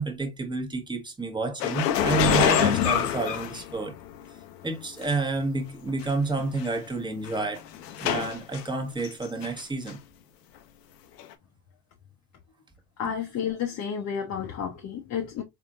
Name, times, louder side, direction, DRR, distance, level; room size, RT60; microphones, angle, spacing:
voice 1, 0.0-3.9 4.6-7.6 8.0-10.0 13.0-13.1, right 3 dB, 10° right, 1.2 m, -29 dB
sound 1, 1.6-4.2 5.0-5.1 6.0-6.1 6.4-6.7 7.2-8.6 9.0-9.6 9.9-10.0 11.2-11.3, left 10 dB, 80° left, 0.8 m, -25 dB
voice 2, 13.0-15.4, left 8 dB, 35° left, 0.8 m, -31 dB
4.2 x 3.5 x 2.5 m
hypercardioid pair, 75°, 48 cm